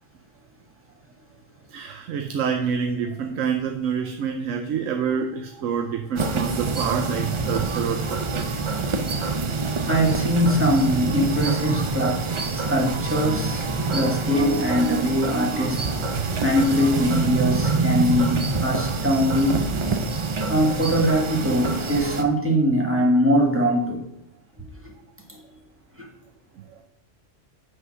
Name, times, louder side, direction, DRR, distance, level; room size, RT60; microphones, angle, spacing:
voice 1, 1.7-8.8 20.0-20.1 26.7-26.8, right 7 dB, 90° right, 6 dB, 1.0 m, -27 dB
sound 1, 6.2-22.2, right 4 dB, 45° right, 0.4 m, -26 dB
voice 2, 9.6-12.2 12.5-16.1 16.4-19.7 20.5-24.1 25.3-25.4, equal, 10° right, -2 dB, 1.4 m, -22 dB
8.1 x 4.0 x 6.1 m, 0.79 s
omnidirectional pair, 1.3 m